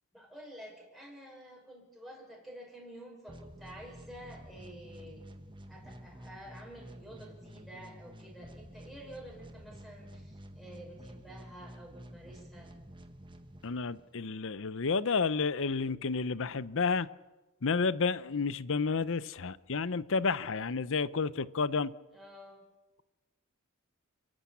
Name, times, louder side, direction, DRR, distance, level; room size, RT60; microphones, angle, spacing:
voice 1, 0.1-5.3 5.7-12.7 22.1-22.6, equal, ahead, 5.7 m, -50 dB
sound 1, 3.3-14.2, equal, 20° right, 1.3 m, -50 dB
voice 2, 13.6-17.1 17.6-21.9, left 4 dB, 60° left, 0.7 m, -31 dB
29.5 x 11.5 x 8.6 m
head